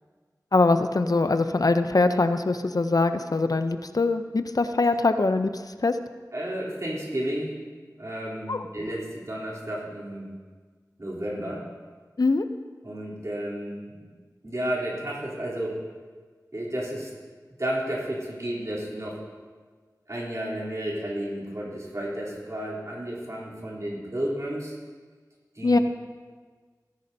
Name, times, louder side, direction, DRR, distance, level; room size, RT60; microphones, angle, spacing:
voice 1, 0.5-6.0 8.5-8.7 12.2-12.4 25.6-25.8, left 3 dB, 65° left, 9 dB, 0.6 m, -23 dB
voice 2, 6.3-7.6 8.0-10.3 11.0-11.6 12.8-14.1 14.4-15.8 16.5-17.1 17.6-19.2 20.1-24.7 25.5-25.8, right 1 dB, 50° right, -6 dB, 3.4 m, -32 dB
17.5 x 10.5 x 2.7 m, 1.5 s
wide cardioid pair, 50°, 7 cm